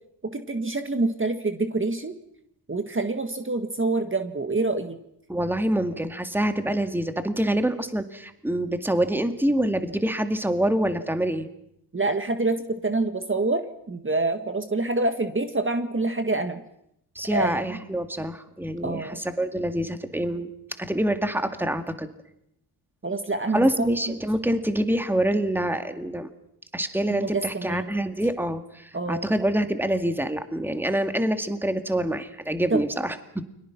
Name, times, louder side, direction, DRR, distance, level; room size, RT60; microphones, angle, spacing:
voice 1, 0.3-2.1 2.7-5.0 11.9-16.6 17.3-17.7 18.8-19.2 23.0-24.1 27.1-27.9 28.9-29.3 32.7-32.8, right 2 dB, 30° right, 7 dB, 1.8 m, -26 dB
voice 2, 5.3-11.5 17.2-22.1 23.5-26.3 26.7-33.4, right 1 dB, 5° right, 8 dB, 2.2 m, -26 dB
29.5 x 23.0 x 6.1 m, 0.77 s
cardioid pair, 75°, 42 cm